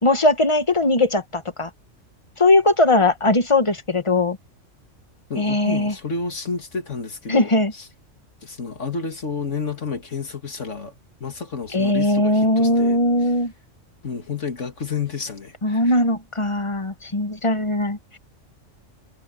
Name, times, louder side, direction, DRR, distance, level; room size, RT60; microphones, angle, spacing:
voice 1, 0.0-1.7 2.4-4.4 5.4-5.9 7.3-7.7 11.7-13.5 15.6-18.2, left 2 dB, 25° left, 1.2 m, -19 dB
voice 2, 5.3-7.9 8.4-10.9 11.2-13.0 13.2-13.3 14.0-15.9, left 5 dB, 75° left, 2.7 m, -30 dB
omnidirectional pair, 1.3 m